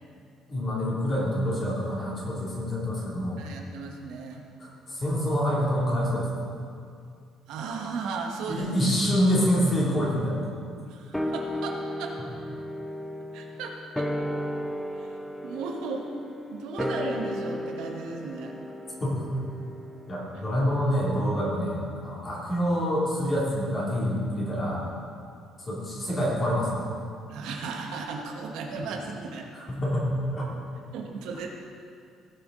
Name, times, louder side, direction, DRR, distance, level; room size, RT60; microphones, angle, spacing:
voice 1, 0.5-3.4 4.6-6.3 8.5-10.5 19.0-19.2 20.1-24.8 25.7-26.8 29.5-30.5, equal, 20° left, -6 dB, 2.6 m, -26 dB
voice 2, 3.4-4.4 7.5-8.7 10.9-12.1 13.3-14.1 14.9-15.1 15.4-16.1 16.5-18.5 20.3-20.4 27.3-29.5 30.9-31.5, right 4 dB, 80° right, 1 dB, 1.3 m, -35 dB
sound 1, 11.1-21.7 22.0-22.1, left 1 dB, 5° left, 0.4 m, -35 dB
17.5 x 6.9 x 3.8 m, 2.3 s
cardioid pair, 175°, 0 cm